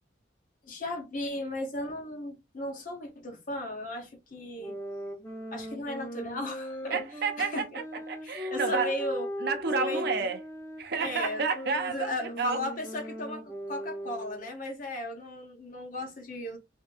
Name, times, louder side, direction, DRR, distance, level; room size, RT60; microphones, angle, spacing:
voice 1, 0.6-4.8 5.5-7.0 7.4-7.8 8.2-9.3 9.7-10.1 11.0-11.4 11.9-16.6, left 1 dB, 45° left, 0.8 m, -36 dB
sound 1, 4.6-14.6, left 1 dB, 15° left, 0.6 m, -38 dB
voice 2, 6.9-9.0 9.4-10.4 10.8-12.6, right 5 dB, 55° right, 0.5 m, -30 dB
3.4 x 2.5 x 2.3 m
head